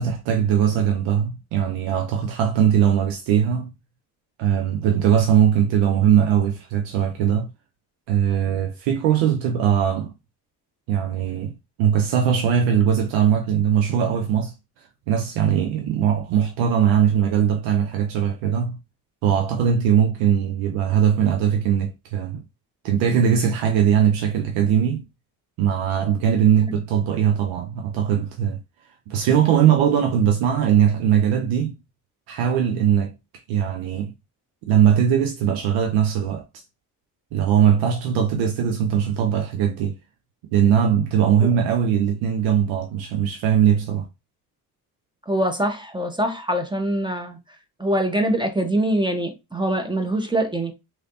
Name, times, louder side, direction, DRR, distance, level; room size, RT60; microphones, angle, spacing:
voice 1, 0.0-3.7 4.4-7.5 8.1-10.1 10.9-18.8 19.2-22.4 22.8-25.0 25.6-28.6 29.1-31.8 32.3-33.1 33.5-34.1 34.7-36.4 37.3-40.0 40.5-44.1, right 8 dB, 85° right, 0.6 m, -20 dB
voice 2, 45.3-47.4 47.8-50.7, right 1 dB, 10° right, 0.9 m, -23 dB
3.2 x 2.8 x 2.6 m
hypercardioid pair, 45°, 46 cm